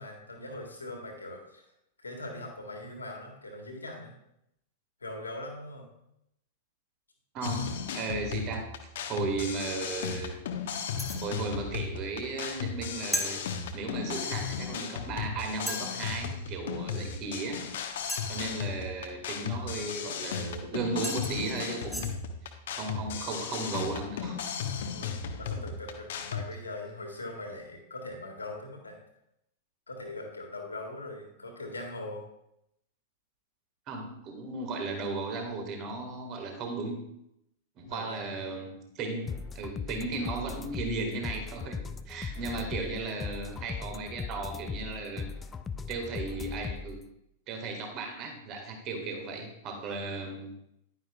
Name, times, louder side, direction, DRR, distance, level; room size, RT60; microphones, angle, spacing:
voice 1, 0.0-1.6 2.0-4.1 5.0-5.9 18.2-18.6 24.9-25.1 25.4-29.0 29.9-32.2 37.8-38.4 42.5-42.8, left 2 dB, 75° left, 2 dB, 1.9 m, -41 dB
voice 2, 7.3-8.7 9.1-10.4 11.2-13.4 13.7-17.7 18.3-22.1 22.7-24.4 33.9-37.1 37.8-41.8 42.1-45.3 45.9-47.0 47.5-50.5, right 3 dB, 35° right, 3 dB, 1.7 m, -35 dB
sound 1, 7.4-26.5, left 6 dB, 55° left, 0.9 m, -36 dB
sound 2, 11.0-11.3 13.1-13.3 14.7-14.8 15.7-15.9 18.1-18.5 20.5-20.6 21.0-22.1, equal, 5° right, 1.4 m, -35 dB
sound 3, 39.3-47.0, left 5 dB, 15° left, 0.4 m, -38 dB
10.5 x 9.7 x 2.3 m, 0.79 s
figure-of-eight pair, 95°, 0 cm